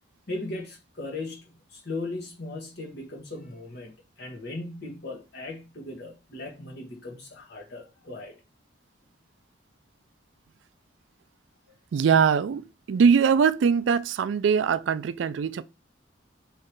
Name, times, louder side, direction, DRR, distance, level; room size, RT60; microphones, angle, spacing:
voice 1, 0.3-3.9 4.2-8.3, left 2 dB, 55° left, 1.4 m, -37 dB
voice 2, 11.9-15.6, right 6 dB, 65° right, 0.3 m, -22 dB
3.7 x 3.2 x 4.4 m
head